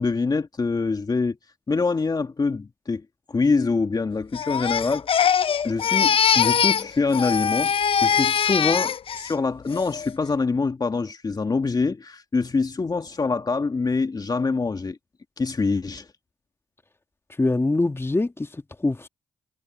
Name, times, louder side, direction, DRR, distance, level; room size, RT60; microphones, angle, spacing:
voice 1, 0.0-1.4 1.7-3.0 3.3-5.1 5.6-7.7 8.0-15.0 15.4-16.1, left 4 dB, 35° left, 2.2 m, -25 dB
Crying sobbing, 4.3-6.9 7.1-9.3 9.7-10.1, left 8 dB, 55° left, 1.0 m, -22 dB
voice 2, 17.4-19.1, left 2 dB, 20° left, 2.4 m, -24 dB
hypercardioid pair, 45°, 11 cm